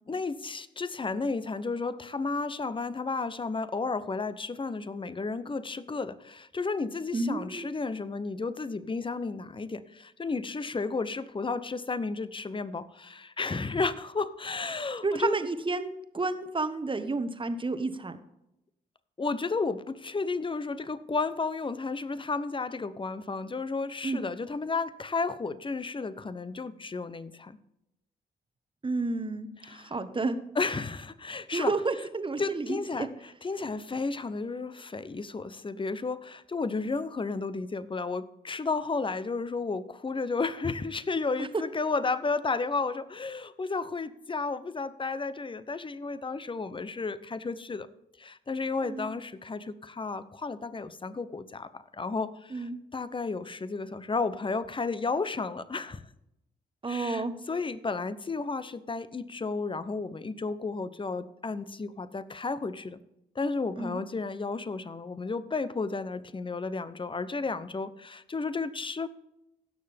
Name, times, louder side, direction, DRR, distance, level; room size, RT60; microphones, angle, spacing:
voice 1, 0.1-15.4 19.2-27.6 30.6-31.7 32.4-33.1 33.4-47.9 48.2-56.0 56.9-63.0 63.4-69.1, left 4 dB, 30° left, 15 dB, 0.8 m, -33 dB
voice 2, 7.1-7.7 15.0-18.2 24.0-24.2 28.8-30.4 31.5-33.1 41.4-41.5 48.8-49.1 52.5-52.8 56.8-57.3 63.8-64.0, right 3 dB, 30° right, 10 dB, 1.2 m, -31 dB
16.5 x 6.6 x 3.5 m, 0.85 s
hypercardioid pair, 45°, 18 cm